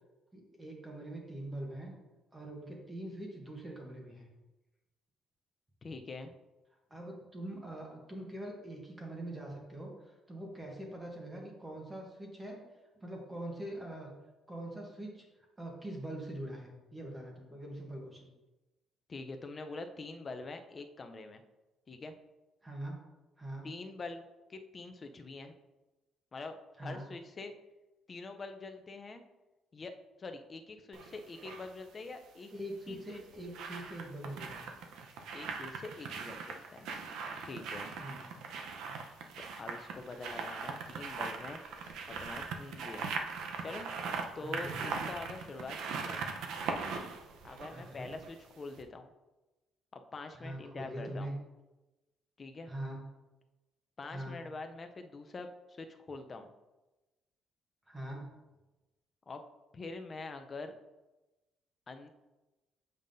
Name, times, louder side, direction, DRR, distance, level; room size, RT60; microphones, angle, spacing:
voice 1, 0.3-1.9 2.3-4.3 6.9-12.6 13.0-14.1 14.5-15.2 15.6-18.3 22.6-23.0 23.4-23.7 26.8-27.1 32.5-34.7 38.0-38.2 44.4-44.8 47.7-48.1 50.4-51.3 52.7-53.0 54.1-54.4 57.9-58.2, right 1 dB, 15° right, 0 dB, 1.0 m, -43 dB
voice 2, 5.8-6.3 19.1-21.4 21.9-22.1 23.6-24.2 24.5-25.5 26.3-27.5 28.1-29.2 29.7-29.9 30.2-32.5 32.9-33.2 35.3-36.9 37.4-38.0 39.4-41.6 42.1-43.1 43.6-43.9 44.3-46.3 47.4-49.1 49.9-51.3 52.4-52.7 54.0-56.5 59.3-59.4 59.7-60.7 61.9-62.1, left 3 dB, 25° left, 6 dB, 0.5 m, -45 dB
sound 1, 30.9-31.7 32.9-48.4 48.8-48.9, right 5 dB, 80° right, 0.6 m, -40 dB
7.2 x 5.3 x 2.6 m, 1.1 s
cardioid pair, 155°, 0 cm